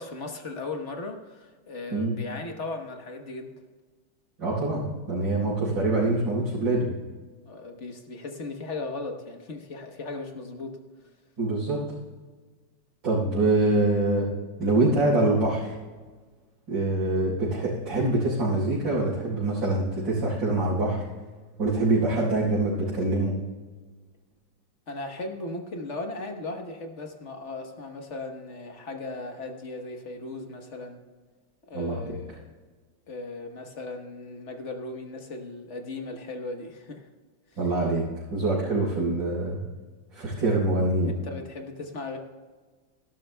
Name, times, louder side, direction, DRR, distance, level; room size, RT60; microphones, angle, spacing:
voice 1, 0.0-3.5 7.4-10.8 24.9-31.0 31.7-32.4 33.1-37.1 41.2-42.2, left 2 dB, 45° left, 4 dB, 1.3 m, -37 dB
voice 2, 4.4-6.9 11.4-11.8 13.0-14.3 14.6-15.8 16.7-21.0 21.6-23.3 31.7-32.2 37.6-38.0 38.3-39.6 40.1-41.1, right 2 dB, 75° right, -10 dB, 5.0 m, -25 dB
18.0 x 12.0 x 2.3 m, 1.4 s
omnidirectional pair, 2.1 m